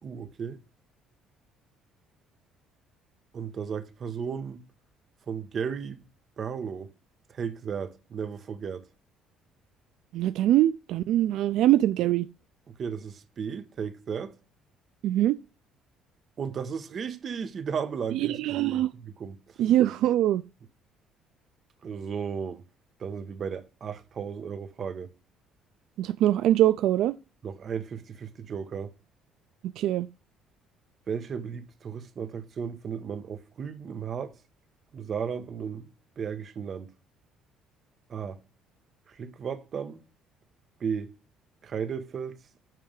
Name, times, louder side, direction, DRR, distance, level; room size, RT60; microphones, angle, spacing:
voice 1, 0.0-0.6 3.3-4.6 5.3-6.0 6.4-6.9 7.3-8.8 12.8-14.3 16.4-18.8 19.2-19.6 21.8-22.6 23.0-25.1 27.4-28.9 31.1-34.3 34.9-35.9 36.2-36.9 38.1-38.4 39.1-40.0 40.8-41.1 41.6-42.4, right 6 dB, 35° right, 1.1 m, -34 dB
voice 2, 10.1-12.3 15.0-15.4 18.1-18.9 19.6-20.4 26.0-27.1 29.8-30.1, right 13 dB, 70° right, 0.4 m, -23 dB
9.2 x 3.4 x 6.5 m
cardioid pair, 150°, 0 cm